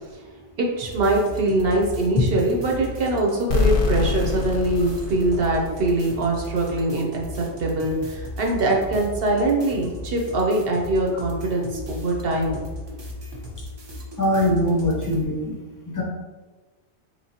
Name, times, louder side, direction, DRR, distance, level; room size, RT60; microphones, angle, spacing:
voice 1, 0.6-7.2 7.6-12.6, right 2 dB, 65° right, -1 dB, 0.8 m, -23 dB
sound 1, 0.8-15.2, left 1 dB, 35° right, 0.4 m, -36 dB
sound 2, 3.5-6.2, left 4 dB, 60° left, 0.7 m, -25 dB
voice 2, 14.2-15.6 15.9-16.0, left 1 dB, 25° left, -2 dB, 0.5 m, -22 dB
4.0 x 2.9 x 2.7 m, 1.3 s
omnidirectional pair, 1.1 m